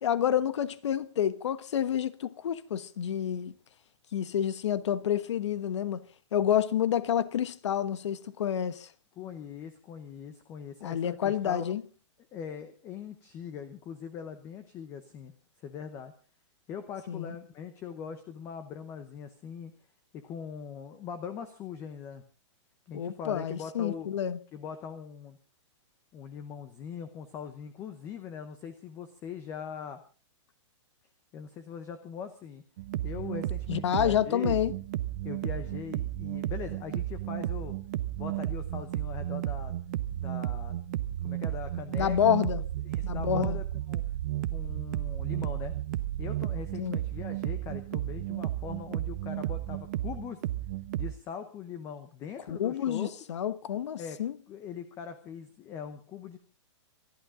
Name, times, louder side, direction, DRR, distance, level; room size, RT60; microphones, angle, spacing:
voice 1, 0.0-3.5 4.1-6.0 6.3-8.9 10.8-11.8 17.1-17.3 22.9-24.4 33.7-34.7 41.9-42.6 43.0-43.6 46.8-47.0 52.5-54.4, left 9 dB, 65° left, 1.2 m, -29 dB
voice 2, 9.2-11.7 12.3-15.3 15.6-16.1 16.7-19.7 20.1-22.2 22.9-24.1 24.5-25.4 26.1-30.0 31.3-32.6 33.0-34.6 35.2-37.7 38.2-39.7 40.2-40.8 41.2-42.2 42.4-42.6 42.8-44.0 44.5-45.7 46.2-50.4 51.0-53.1 54.0-54.2 54.5-56.4, left 7 dB, 15° left, 0.9 m, -41 dB
sound 1, 32.8-51.1, right 14 dB, 35° right, 0.7 m, -33 dB
25.5 x 11.5 x 3.8 m
hypercardioid pair, 170°, 16 cm